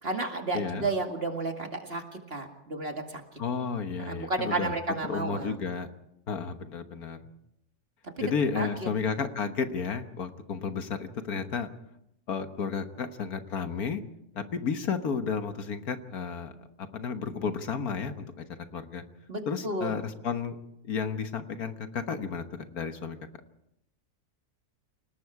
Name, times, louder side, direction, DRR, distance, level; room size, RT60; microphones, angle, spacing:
voice 1, 0.0-2.0 2.3-3.2 4.0-5.6 8.6-8.9 19.3-19.9, right 2 dB, 40° right, 4 dB, 2.5 m, -32 dB
voice 2, 0.5-0.9 3.4-4.8 5.1-5.9 6.3-7.2 8.2-11.7 12.3-14.0 14.3-16.5 16.8-18.4 18.7-19.0 19.5-20.6 20.8-23.2, left 6 dB, 70° left, 8 dB, 1.7 m, -32 dB
29.0 x 19.0 x 4.8 m, 0.80 s
omnidirectional pair, 1.6 m